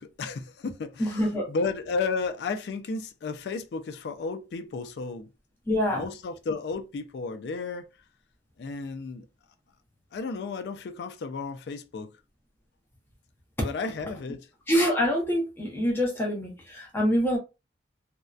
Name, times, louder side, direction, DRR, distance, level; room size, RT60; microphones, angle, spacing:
voice 1, 0.0-5.3 5.9-7.9 8.6-9.3 10.1-12.1 13.6-14.5, left 4 dB, 60° left, 0.3 m, -33 dB
voice 2, 1.0-1.5 5.7-6.1 13.6-13.7 14.7-17.4, equal, 15° left, 0.7 m, -25 dB
2.6 x 2.0 x 2.3 m
head